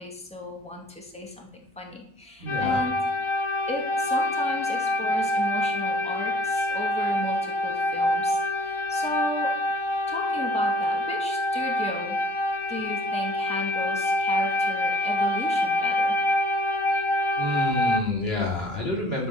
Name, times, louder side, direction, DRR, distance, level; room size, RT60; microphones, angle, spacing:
voice 1, 0.0-2.9 3.7-9.6 10.1-12.4 12.7-16.2, left 1 dB, 5° left, 0 dB, 2.2 m, -35 dB
voice 2, 2.4-2.8 17.4-19.3, left 2 dB, 70° left, -2 dB, 3.5 m, -28 dB
sound 1, 2.5-18.0, left 1 dB, 30° left, 0.8 m, -26 dB
11.5 x 7.9 x 5.9 m, 0.64 s
omnidirectional pair, 1.1 m